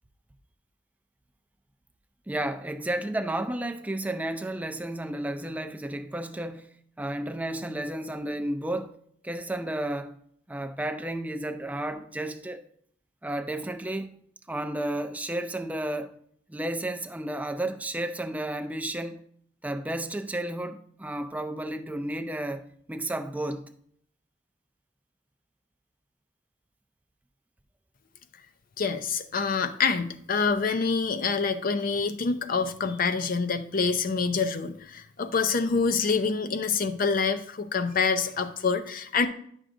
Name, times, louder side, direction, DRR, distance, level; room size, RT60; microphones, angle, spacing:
voice 1, 2.3-6.7 7.0-9.0 9.2-10.2 10.5-12.6 13.2-14.2 14.5-16.2 16.5-19.2 19.6-23.7, right 1 dB, 10° right, 0.4 m, -32 dB
voice 2, 28.8-39.3, left 5 dB, 50° left, 0.6 m, -26 dB
9.9 x 6.2 x 2.6 m
head